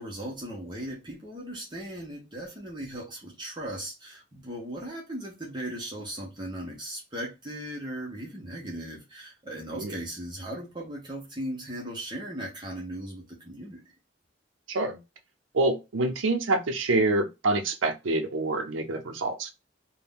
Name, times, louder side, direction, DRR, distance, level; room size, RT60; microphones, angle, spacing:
voice 1, 0.0-13.8, right 1 dB, 25° right, 0.7 m, -37 dB
voice 2, 14.7-15.0 15.5-19.5, right 2 dB, 85° right, 0.6 m, -26 dB
2.5 x 2.1 x 3.5 m
head